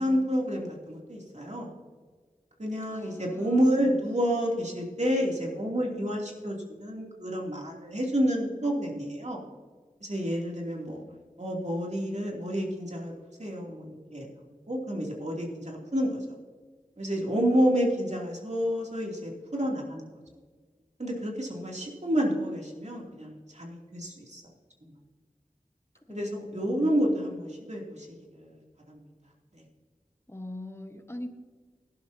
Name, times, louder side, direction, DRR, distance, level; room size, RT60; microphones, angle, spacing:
voice 1, 0.0-1.7 2.6-9.4 10.0-11.0 11.4-13.1 13.4-14.3 14.7-16.2 17.0-20.1 21.0-24.4 24.8-24.9 26.1-28.5 28.9-29.0 29.5-29.6, equal, 55° right, -1 dB, 2.8 m, -29 dB
voice 2, 2.9-3.9 26.0-26.9 30.3-31.3, left 1 dB, 20° left, 6 dB, 1.2 m, -41 dB
18.5 x 11.5 x 2.8 m, 1.5 s
wide cardioid pair, 45°, 14 cm